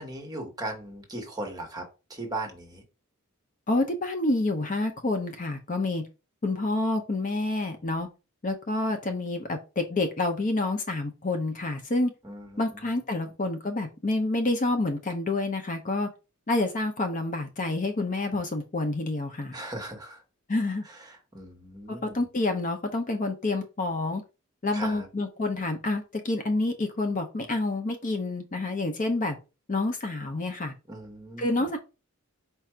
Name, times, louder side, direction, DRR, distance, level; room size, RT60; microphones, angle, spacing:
voice 1, 0.0-2.8 12.2-12.9 19.5-20.2 20.8-22.2 24.7-25.1 30.9-31.7, right 2 dB, 20° right, 4 dB, 1.1 m, -38 dB
voice 2, 3.7-6.0 6.4-8.1 8.4-12.1 12.6-16.1 16.5-19.6 20.5-20.8 22.0-24.2 24.6-29.4 29.7-30.7 31.4-31.8, left 2 dB, 35° left, 6 dB, 0.6 m, -28 dB
4.6 x 2.5 x 4.3 m, 0.30 s
head